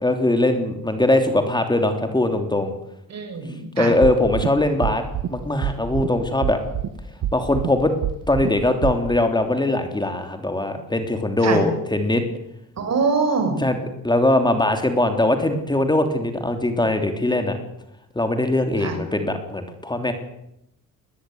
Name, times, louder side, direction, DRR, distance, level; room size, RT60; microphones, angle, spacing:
voice 1, 0.0-2.7 3.8-5.0 5.3-6.6 7.3-7.9 8.3-12.2 13.6-13.8 14.0-17.6 18.1-20.1, left 1 dB, 10° left, 6 dB, 3.2 m, -21 dB
voice 2, 3.1-4.0 11.4-11.6 12.8-13.6 18.8-19.0, right 4 dB, 50° right, 7 dB, 6.6 m, -23 dB
sound 1, 4.0-4.5 4.8-5.3 5.6-6.1 6.4-6.9 7.2-7.7 8.0-8.5 8.8-8.9, right 11 dB, 70° right, 2.0 m, -24 dB
20.5 x 18.5 x 9.4 m, 0.81 s
cardioid pair, 100°, 34 cm